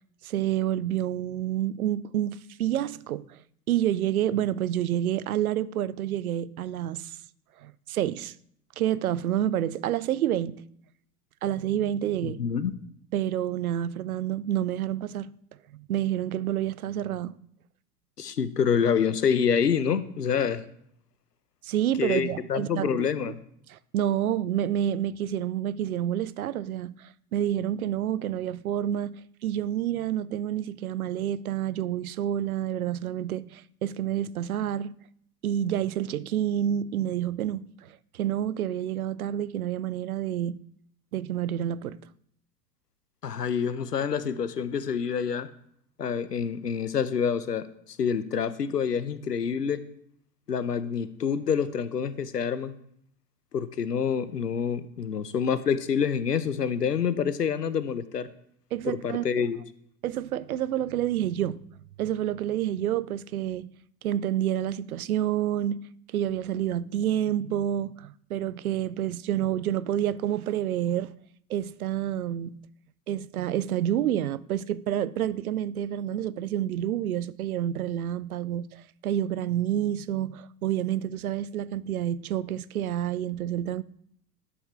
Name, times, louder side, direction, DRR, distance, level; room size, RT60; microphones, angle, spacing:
voice 1, 0.2-3.4 3.7-7.2 7.6-8.3 8.8-10.6 11.4-12.4 13.1-15.3 15.7-17.4 21.6-23.1 23.7-34.9 35.4-40.6 41.1-42.0 58.7-59.5 60.0-61.6 62.0-63.7 64.0-65.8 66.1-71.1 71.5-72.5 73.1-83.8, right 11 dB, 65° right, 0.5 m, -28 dB
voice 2, 12.2-12.8 18.2-20.6 22.0-23.4 43.2-45.5 46.0-49.8 50.5-52.7 53.5-58.3 58.8-59.6, left 7 dB, 85° left, 0.7 m, -27 dB
11.0 x 6.8 x 3.5 m
figure-of-eight pair, 90°, 47 cm